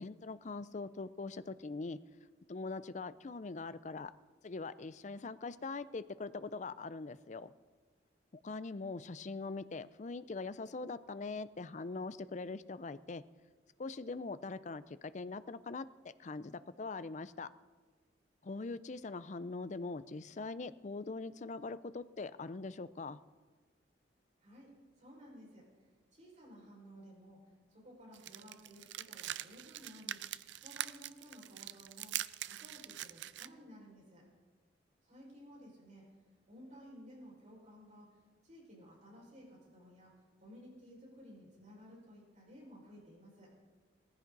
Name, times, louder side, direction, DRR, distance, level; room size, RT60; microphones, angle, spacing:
voice 1, 0.0-2.0 2.5-4.1 4.4-7.5 8.4-13.2 13.8-15.9 16.2-17.5 18.4-23.2, left 3 dB, 40° left, 15 dB, 0.5 m, -42 dB
voice 2, 24.4-27.4 27.7-30.2 30.6-32.2 32.4-34.3 35.0-36.1 36.5-38.1 38.4-43.5, equal, 40° right, -3 dB, 5.5 m, -56 dB
sound 1, 28.1-33.5, right 13 dB, 75° right, 0.4 m, -43 dB
18.0 x 15.0 x 4.0 m, 1.4 s
head